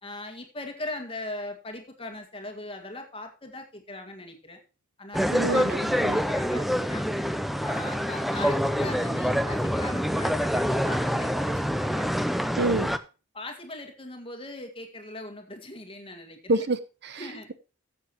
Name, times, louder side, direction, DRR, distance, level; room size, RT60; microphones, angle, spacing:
voice 1, 0.0-4.6 5.0-7.1 7.6-12.1 13.3-16.7 17.2-17.5, left 2 dB, 25° left, 5 dB, 1.9 m, -39 dB
sound 1, 5.1-13.0, equal, ahead, 0.5 m, -26 dB
voice 2, 5.3-6.2 12.6-12.9 16.5-17.5, right 2 dB, 50° right, 13 dB, 0.7 m, -28 dB
14.5 x 7.8 x 3.0 m, 0.33 s
head